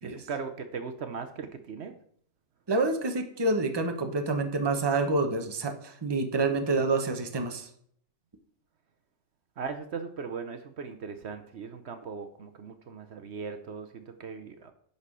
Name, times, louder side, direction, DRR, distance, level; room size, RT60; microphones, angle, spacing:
voice 1, 0.0-2.0 9.6-14.7, right 5 dB, 65° right, 7 dB, 1.0 m, -38 dB
voice 2, 2.7-7.7, right 3 dB, 25° right, 5 dB, 0.9 m, -27 dB
10.5 x 4.2 x 6.1 m, 0.63 s
omnidirectional pair, 1.3 m